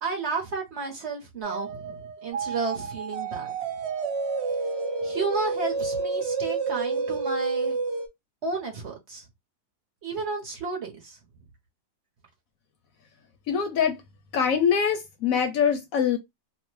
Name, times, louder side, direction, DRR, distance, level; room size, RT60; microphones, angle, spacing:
voice 1, 0.0-3.5 5.0-7.8 8.4-9.2 10.0-11.2, right 3 dB, 55° right, 0.9 m, -32 dB
sound 1, 1.4-8.1, right 4 dB, 80° right, 0.6 m, -29 dB
voice 2, 13.5-14.0 14.3-16.2, left 7 dB, 70° left, 0.9 m, -23 dB
2.8 x 2.1 x 3.1 m
omnidirectional pair, 1.7 m